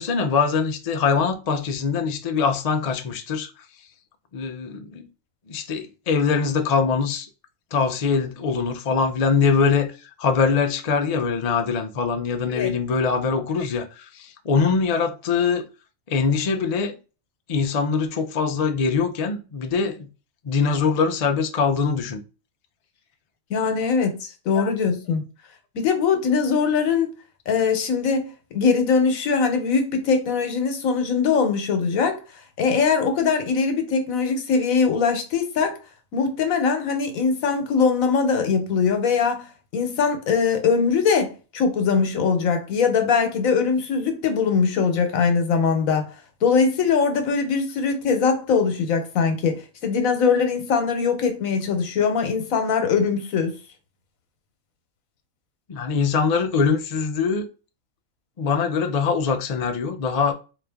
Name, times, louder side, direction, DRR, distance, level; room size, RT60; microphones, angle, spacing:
voice 1, 0.0-3.5 4.3-5.1 5.5-7.3 7.7-15.7 16.1-17.0 17.5-20.1 20.4-22.2 24.5-24.7 55.7-57.5 58.4-60.3, left 5 dB, 60° left, 0.4 m, -23 dB
voice 2, 23.5-25.2 25.7-27.1 27.5-32.2 32.6-35.8 36.1-39.4 39.7-46.1 46.4-53.5, left 5 dB, 80° left, 1.2 m, -21 dB
4.1 x 2.4 x 3.4 m
omnidirectional pair, 1.4 m